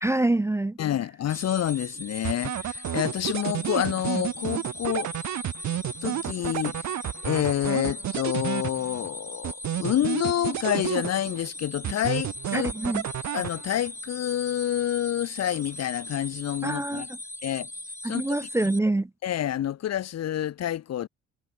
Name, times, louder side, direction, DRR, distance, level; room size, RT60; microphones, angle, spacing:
voice 1, 0.0-0.8 12.5-13.0 16.6-17.0 18.0-19.1, right 2 dB, 10° right, 0.5 m, -25 dB
voice 2, 0.8-5.1 6.0-6.8 7.2-12.7 13.3-17.1 17.4-17.7 18.0-18.5 19.2-21.1, left 11 dB, 55° left, 1.0 m, -28 dB
sound 1, 1.3-18.8, left 1 dB, 10° left, 2.5 m, -40 dB
sound 2, 2.2-9.1 9.4-11.5 11.8-13.9, right 12 dB, 70° right, 1.4 m, -31 dB
cardioid pair, 90°, 30 cm